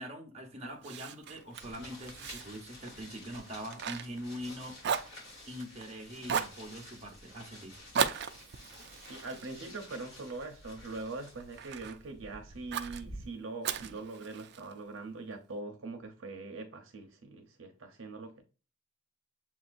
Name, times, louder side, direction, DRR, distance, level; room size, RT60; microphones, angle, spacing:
voice 1, 0.0-4.8 5.4-7.7, equal, 30° right, 1.0 m, -43 dB
Fire, 0.8-4.5 4.8-5.9 6.3-6.6 7.9-10.4 10.9-12.0 12.7-13.0 13.6-14.7, right 7 dB, 55° right, 0.4 m, -36 dB
sound 1, 1.6-13.3, left 1 dB, 55° left, 2.7 m, -51 dB
voice 2, 9.0-18.4, right 3 dB, 70° right, 0.8 m, -42 dB
7.2 x 2.7 x 2.6 m
head